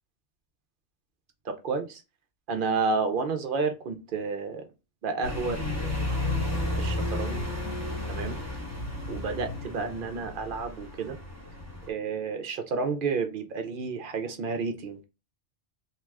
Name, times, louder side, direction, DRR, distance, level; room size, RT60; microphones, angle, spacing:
voice 1, 1.4-2.0 2.5-4.7 5.0-6.0 6.8-7.5 8.1-8.4 9.1-11.2 11.9-15.0, right 4 dB, 60° right, 0.6 m, -31 dB
sound 1, 5.2-11.9, left 1 dB, 15° left, 0.9 m, -32 dB
2.8 x 2.3 x 3.1 m
omnidirectional pair, 1.2 m